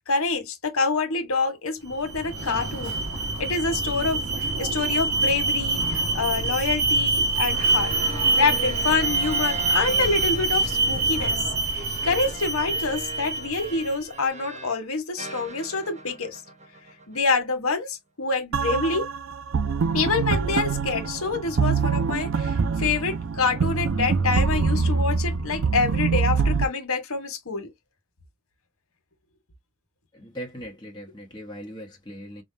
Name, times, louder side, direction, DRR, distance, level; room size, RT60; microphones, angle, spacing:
voice 1, 0.1-3.0 3.4-7.9 8.4-11.4 11.7-16.4 17.1-19.1 19.9-27.7, left 4 dB, 80° left, 1.4 m, -26 dB
Alarm, 1.9-13.9, right 3 dB, 85° right, 1.6 m, -25 dB
sound 1, 7.4-14.8 15.2-17.6, right 3 dB, 30° right, 0.7 m, -40 dB
sound 2, 18.5-26.7, right 5 dB, 65° right, 0.5 m, -24 dB
voice 2, 30.1-32.4, equal, 20° left, 1.0 m, -39 dB
5.0 x 2.2 x 2.7 m
head